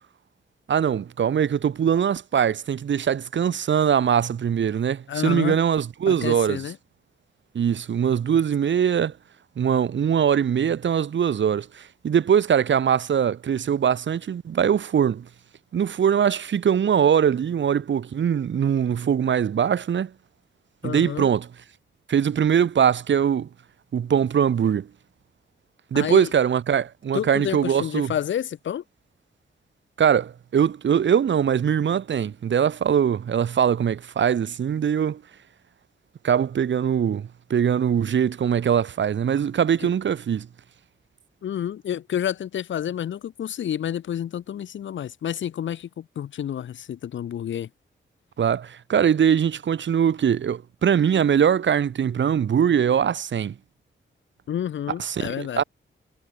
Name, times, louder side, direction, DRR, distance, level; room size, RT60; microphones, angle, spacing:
voice 1, 0.7-6.6 7.5-9.1 9.6-15.3 15.7-20.1 20.8-21.5 22.1-23.5 23.9-24.9 25.9-28.1 30.0-35.2 36.2-40.5 48.4-53.5 55.0-55.6, right 8 dB, 65° right, 0.9 m, -22 dB
voice 2, 5.1-5.6 6.1-6.8 20.8-21.3 25.9-26.3 27.1-28.8 41.4-47.7 54.5-55.6, left 10 dB, 70° left, 0.6 m, -29 dB
cardioid pair, 75°, 21 cm